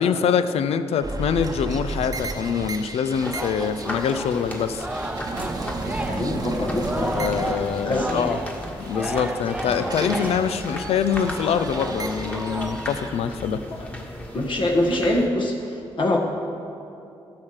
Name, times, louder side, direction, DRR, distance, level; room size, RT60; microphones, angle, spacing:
voice 1, 0.0-4.9 7.0-8.4 8.9-13.6, left 7 dB, 75° left, 11 dB, 0.5 m, -24 dB
sound 1, 1.0-9.0 9.3-13.1, right 2 dB, 35° right, 0.9 m, -34 dB
sound 2, 3.1-15.3, left 1 dB, 15° left, 1.6 m, -36 dB
Singing, 3.2-12.9, right 1 dB, 10° right, 0.8 m, -33 dB
voice 2, 5.8-7.1 7.7-8.2 13.7-13.9 14.3-16.2, left 1 dB, 50° left, 0 dB, 1.4 m, -24 dB
13.5 x 5.8 x 6.5 m, 2.7 s
cardioid pair, 80°, 10 cm